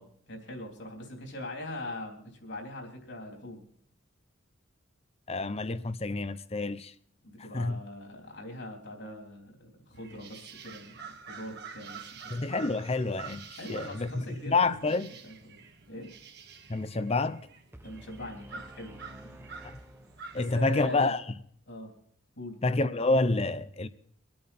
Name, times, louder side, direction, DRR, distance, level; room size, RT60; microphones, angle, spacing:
voice 1, 0.0-3.7 7.2-11.0 11.3-12.3 13.6-14.7 15.2-15.6 15.9-16.1 17.8-19.5 20.3-21.1 21.7-21.9 22.4-22.6, left 1 dB, 60° left, 3.6 m, -42 dB
voice 2, 5.3-6.9 7.5-7.8 12.3-13.4 13.7-15.1 16.7-17.4 19.6-19.8 20.3-21.2 22.6-23.9, left 3 dB, 30° left, 0.7 m, -28 dB
sound 1, 9.9-20.6, right 6 dB, 55° right, 1.6 m, -48 dB
sound 2, 17.7-20.8, right 1 dB, 10° right, 0.8 m, -51 dB
25.0 x 8.6 x 4.3 m
head